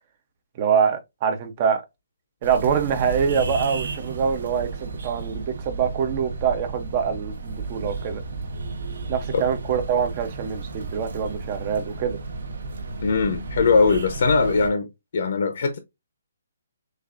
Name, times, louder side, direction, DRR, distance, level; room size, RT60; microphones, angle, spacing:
voice 1, 0.6-1.8 2.4-8.2 9.1-12.2, right 7 dB, 25° right, 0.7 m, -24 dB
sound 1, 2.4-14.7, right 3 dB, 55° right, 1.2 m, -33 dB
voice 2, 13.0-14.9 15.1-15.8, left 4 dB, 45° left, 0.8 m, -20 dB
6.5 x 2.6 x 2.5 m
hypercardioid pair, 175°, 0 cm